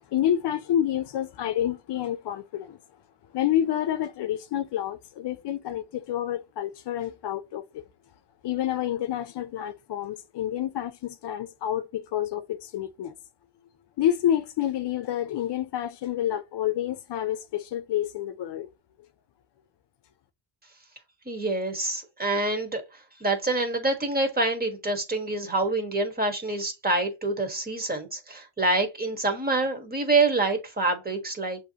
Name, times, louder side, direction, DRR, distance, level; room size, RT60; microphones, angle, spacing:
voice 1, 0.1-2.8 3.3-7.8 8.4-13.1 14.0-18.7, left 11 dB, 65° left, 0.7 m, -28 dB
voice 2, 21.3-22.8 23.2-31.6, right 2 dB, 20° right, 1.2 m, -26 dB
6.8 x 2.8 x 2.8 m
cardioid pair, 140°, 45 cm